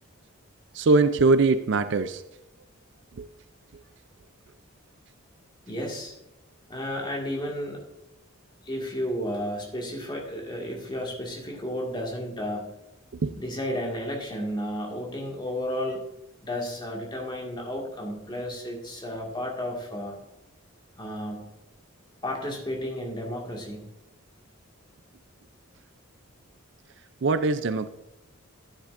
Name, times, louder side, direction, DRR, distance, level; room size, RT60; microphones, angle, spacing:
voice 1, 0.7-2.2 3.2-3.3 13.2-13.4 27.2-27.9, right 3 dB, 55° right, 11 dB, 0.4 m, -22 dB
voice 2, 5.7-6.1 6.7-7.8 8.6-12.7 13.3-16.0 16.4-20.1 21.0-21.5 22.2-23.9, equal, 20° left, -1 dB, 1.9 m, -32 dB
11.5 x 9.9 x 2.5 m, 0.94 s
head